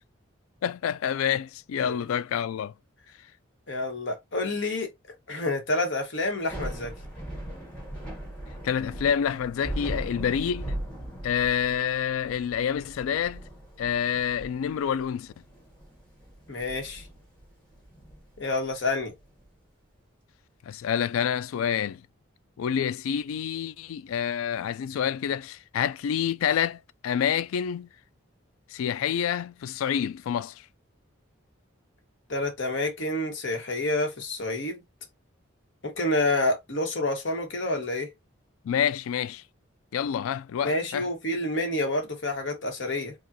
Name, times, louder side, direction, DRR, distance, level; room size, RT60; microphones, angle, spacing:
voice 1, 0.6-2.7 8.6-10.7 11.2-13.4 13.8-15.3 20.6-22.0 22.6-27.9 28.7-30.6 38.6-39.4 39.9-41.1, left 8 dB, 85° left, 0.3 m, -28 dB
voice 2, 3.7-4.9 5.3-6.9 16.5-17.1 18.4-19.1 32.3-34.8 35.8-38.1 40.6-43.1, left 2 dB, 65° left, 1.2 m, -28 dB
Thunder / Rain, 6.3-19.5, right 1 dB, 5° left, 1.6 m, -39 dB
4.9 x 2.4 x 2.7 m
head